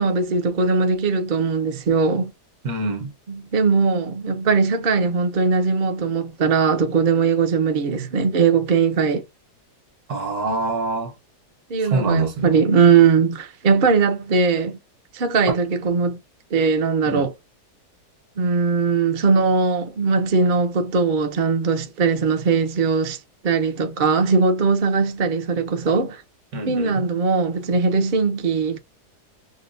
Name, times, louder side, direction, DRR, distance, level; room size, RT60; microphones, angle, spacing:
voice 1, 0.0-2.3 3.3-9.2 11.7-14.8 15.1-16.2 16.5-17.3 18.4-23.2 23.4-26.2 26.6-28.8, right 5 dB, 50° right, 0.6 m, -20 dB
voice 2, 2.6-3.1 10.1-11.1 11.8-12.6 17.1-17.3 26.5-27.0, right 3 dB, 65° right, 1.5 m, -25 dB
6.5 x 2.2 x 2.5 m
omnidirectional pair, 1.7 m